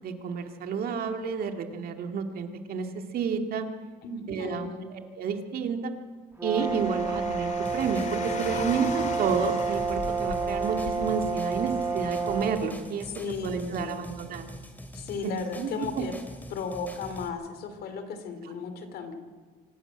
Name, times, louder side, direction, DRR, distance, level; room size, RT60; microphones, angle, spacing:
voice 1, 0.0-2.9 3.1-3.7 4.3-5.9 6.4-13.1 13.4-14.5 15.2-15.7 16.0-16.1, right 6 dB, 60° right, 5 dB, 2.2 m, -30 dB
voice 2, 4.0-4.9 13.2-14.1 14.9-16.1 16.5-19.1, left 5 dB, 65° left, 8 dB, 3.0 m, -35 dB
Brass instrument, 6.4-12.6, right 5 dB, 15° right, 2.5 m, -30 dB
Car, 6.6-12.4, left 5 dB, 45° left, 2.1 m, -39 dB
sound 1, 7.6-17.3, equal, 10° left, 2.8 m, -44 dB
25.0 x 12.0 x 8.9 m, 1.5 s
cardioid pair, 110°, 17 cm